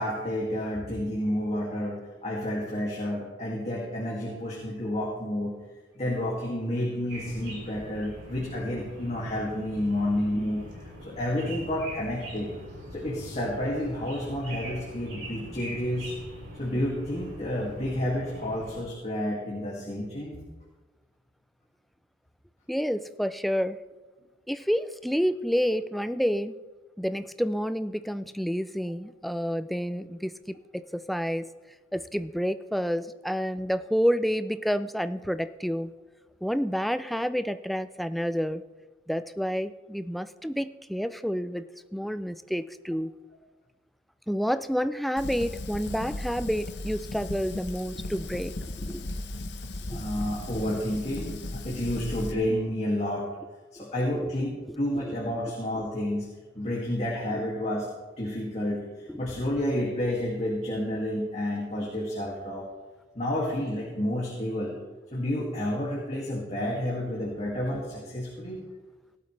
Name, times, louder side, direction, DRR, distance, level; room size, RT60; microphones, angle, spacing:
voice 1, 0.0-5.6 5.9-12.5 12.9-16.1 16.6-20.4 49.9-53.3 53.8-56.3 56.6-57.9 58.2-62.7 63.1-64.8 65.1-68.6, left 1 dB, 35° left, -4 dB, 2.3 m, -30 dB
sound 1, 7.1-18.8, equal, 70° right, 4.6 m, -42 dB
voice 2, 22.7-23.8 24.5-26.6 27.0-31.5 31.9-35.9 36.4-38.6 39.1-41.7 41.9-43.1 44.3-49.1 49.9-50.0 53.8-53.9 54.2-54.3 55.0-55.2 56.7-56.8 57.3-57.4 59.1-59.2, equal, ahead, 12 dB, 0.3 m, -29 dB
Fire, 45.2-52.3, left 2 dB, 65° left, 1.0 m, -36 dB
17.5 x 12.0 x 3.3 m, 1.2 s
head